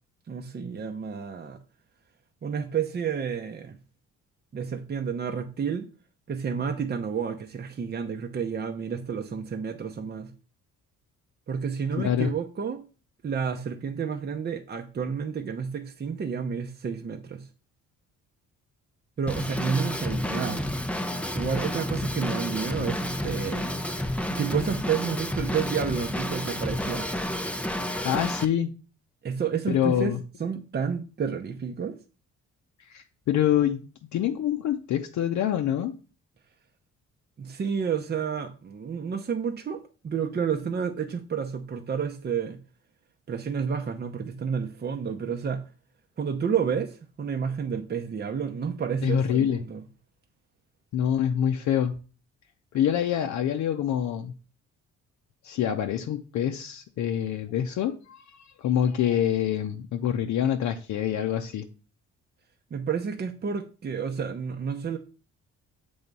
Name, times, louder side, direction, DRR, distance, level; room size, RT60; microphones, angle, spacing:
voice 1, 0.3-1.6 2.4-3.8 4.5-5.9 6.3-10.3 11.5-12.8 13.2-17.5 19.2-20.7 21.3-23.7 24.3-27.1 29.2-30.1 30.4-32.0 37.4-42.6 43.3-45.6 46.2-49.8 62.7-65.0, right 6 dB, 35° right, 0.7 m, -30 dB
voice 2, 12.0-12.3 27.8-28.7 29.7-30.2 32.9-35.9 49.0-49.6 50.9-51.9 52.7-54.3 55.4-61.7, left 10 dB, 70° left, 0.6 m, -26 dB
Drum kit / Drum, 19.3-28.4, left 1 dB, 5° left, 0.5 m, -30 dB
7.0 x 3.5 x 5.3 m
cardioid pair, 90°, 30 cm